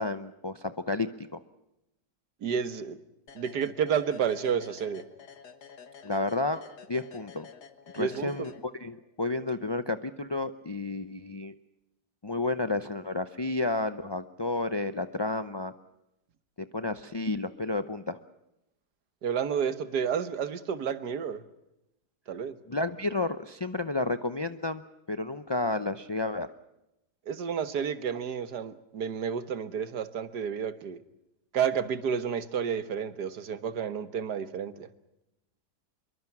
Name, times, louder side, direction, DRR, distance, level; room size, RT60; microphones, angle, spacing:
voice 1, 0.0-1.4 6.0-6.6 6.9-7.5 7.9-11.5 12.2-15.7 16.6-18.2 22.7-24.8 25.1-26.5, left 2 dB, 35° left, 10 dB, 0.4 m, -31 dB
voice 2, 2.4-3.0 3.4-5.0 8.0-8.4 19.2-21.4 22.3-22.6 27.3-31.0 31.5-34.9, right 7 dB, 75° right, 12 dB, 1.9 m, -30 dB
sound 1, 3.3-9.1, left 6 dB, 75° left, 2.1 m, -50 dB
26.0 x 23.0 x 6.1 m, 0.87 s
omnidirectional pair, 1.8 m